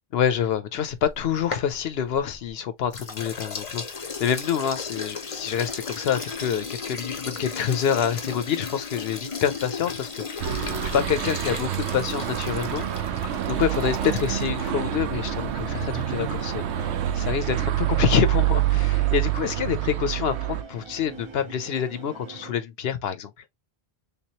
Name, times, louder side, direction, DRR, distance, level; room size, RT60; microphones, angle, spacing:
voice 1, 0.1-13.1 13.5-23.3, left 8 dB, 70° left, 0.8 m, -27 dB
sound 1, 0.9-2.5 2.9-14.7, left 5 dB, 35° left, 0.7 m, -35 dB
sound 2, 10.4-20.6, right 12 dB, 80° right, 0.9 m, -26 dB
sound 3, 11.9-22.5, right 4 dB, 40° right, 0.5 m, -43 dB
3.4 x 3.0 x 2.8 m
omnidirectional pair, 1.1 m